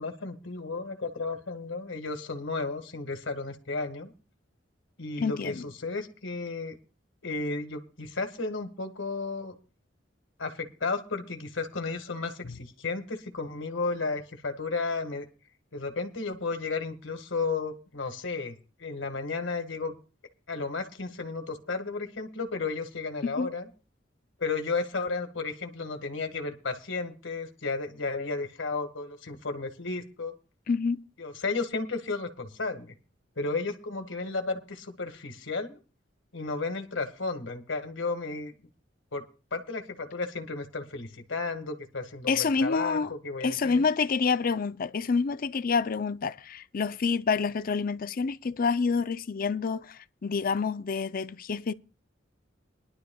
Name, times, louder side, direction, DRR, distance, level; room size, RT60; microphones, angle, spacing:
voice 1, 0.0-4.1 5.0-6.8 7.2-9.6 10.4-15.3 15.7-20.0 20.5-23.7 24.4-30.3 31.2-32.9 33.4-35.8 36.3-38.5 39.1-39.2 39.5-43.8, left 3 dB, 80° left, 1.8 m, -33 dB
voice 2, 5.2-5.6 12.4-12.5 23.2-23.5 30.7-31.0 42.3-43.1 43.4-51.7, left 5 dB, 50° left, 0.5 m, -28 dB
22.0 x 11.5 x 2.3 m
head